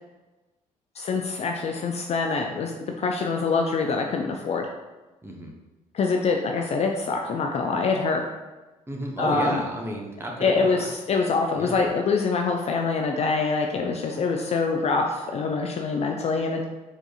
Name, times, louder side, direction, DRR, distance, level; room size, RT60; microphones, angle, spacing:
voice 1, 1.0-2.7 3.0-4.7 5.9-8.2 9.2-9.6 10.4-16.6, left 4 dB, 35° left, 2 dB, 0.4 m, -25 dB
voice 2, 5.2-5.5 8.9-10.8 11.6-11.9, right 1 dB, 15° right, 0 dB, 0.8 m, -32 dB
4.5 x 2.8 x 2.3 m, 1.1 s
figure-of-eight pair, 45°, 18 cm